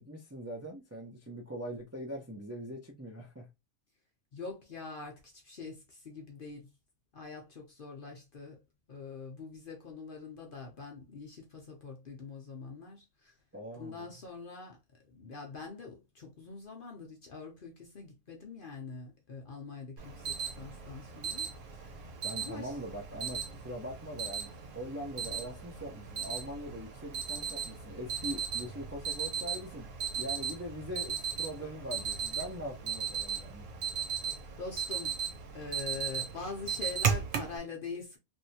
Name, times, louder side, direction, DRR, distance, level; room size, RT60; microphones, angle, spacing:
voice 1, 0.0-3.5 13.5-14.1 22.2-29.9 30.2-33.7, equal, 25° right, 0.3 m, -42 dB
voice 2, 4.3-6.7 7.1-13.4 13.7-14.8 15.0-22.0 22.4-22.8 34.6-35.2 35.5-38.2, left 4 dB, 50° left, 0.7 m, -44 dB
Alarm, 20.0-37.6, right 7 dB, 65° right, 1.1 m, -37 dB
3.2 x 2.7 x 2.7 m
omnidirectional pair, 1.5 m